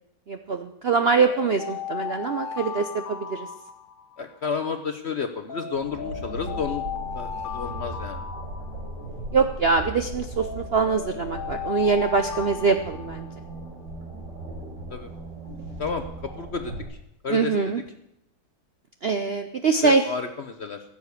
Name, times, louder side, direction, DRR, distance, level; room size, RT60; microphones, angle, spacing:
voice 1, 0.3-3.5 9.3-13.3 17.3-17.8 19.0-20.0, right 5 dB, 55° right, 7 dB, 0.6 m, -23 dB
sound 1, 1.2-4.4 5.5-9.2 10.4-13.6, left 7 dB, 35° left, 1.3 m, -36 dB
voice 2, 4.2-6.8 7.1-8.3 14.9-15.1 15.8-17.0 17.2-17.7 19.8-20.8, left 5 dB, 50° left, 7 dB, 0.8 m, -31 dB
sound 2, 5.7-16.8, right 1 dB, 75° right, 5.0 m, -38 dB
15.5 x 7.0 x 8.2 m, 0.78 s
omnidirectional pair, 1.9 m